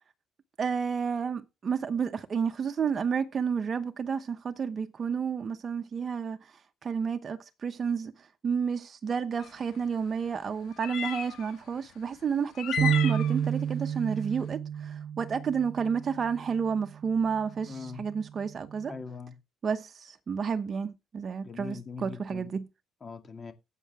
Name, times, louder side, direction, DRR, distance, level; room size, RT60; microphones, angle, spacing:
voice 1, 0.6-19.0 19.6-22.7, right 6 dB, 40° right, 1.0 m, -31 dB
sound 1, 9.4-9.5 10.7-11.5 12.6-13.4, left 8 dB, 80° left, 1.7 m, -33 dB
sound 2, 12.8-19.0, right 9 dB, 90° right, 0.6 m, -32 dB
voice 2, 17.7-18.0 18.9-19.3 21.4-22.5 23.0-23.5, left 5 dB, 35° left, 2.2 m, -41 dB
15.0 x 8.4 x 3.6 m
cardioid pair, 110°, 0 cm